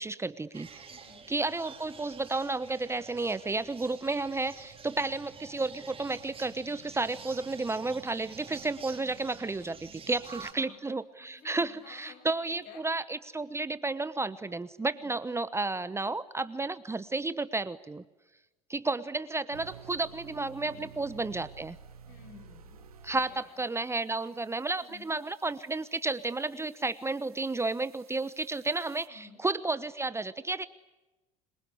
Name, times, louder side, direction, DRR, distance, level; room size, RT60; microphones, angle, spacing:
voice 1, 0.0-0.7 1.3-18.0 18.7-21.8 23.0-30.7, right 3 dB, 15° right, 15 dB, 1.0 m, -32 dB
sound 1, 0.5-10.5, right 5 dB, 30° right, 4.1 m, -48 dB
voice 2, 0.9-1.3 4.9-5.0 10.1-10.8 11.2-12.3 12.6-12.9 14.9-15.2 20.6-20.9 22.1-23.5 24.8-25.1 29.1-29.4, left 6 dB, 60° left, 6 dB, 6.7 m, -54 dB
sound 2, 19.5-29.1, right 7 dB, 85° right, 1.6 m, -53 dB
27.0 x 22.5 x 9.9 m, 1.1 s
hypercardioid pair, 70°, 18 cm